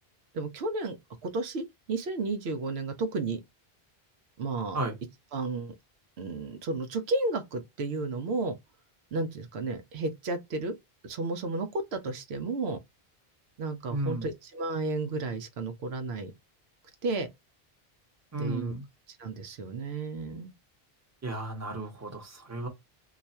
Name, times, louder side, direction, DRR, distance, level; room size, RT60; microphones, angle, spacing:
voice 1, 0.3-1.0 1.2-3.4 4.4-4.8 5.3-5.7 6.2-8.6 9.1-10.7 11.0-12.8 13.6-16.3 17.0-17.3 18.4-18.7 19.2-20.5, right 3 dB, 85° right, 0.9 m, -32 dB
voice 2, 13.9-14.3 18.3-18.8 21.2-22.7, right 2 dB, 15° right, 0.9 m, -33 dB
2.5 x 2.3 x 4.1 m
omnidirectional pair, 1.0 m